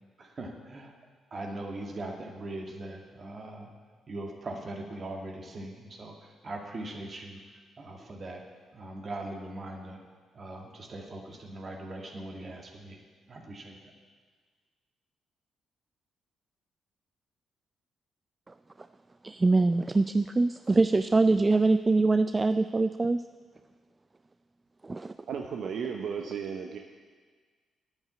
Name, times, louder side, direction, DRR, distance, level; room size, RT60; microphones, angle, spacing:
voice 1, 0.2-0.9 1.3-3.7 4.1-7.4 7.8-8.4 8.7-10.0 10.3-13.0 13.3-13.9, right 2 dB, 45° right, 1 dB, 2.2 m, -40 dB
voice 2, 19.2-23.2 24.8-25.1, right 3 dB, 30° right, 11 dB, 0.4 m, -24 dB
voice 3, 25.3-26.8, right 7 dB, 65° right, 3 dB, 0.8 m, -34 dB
9.7 x 8.3 x 8.3 m, 1.5 s
hypercardioid pair, 45°, 0 cm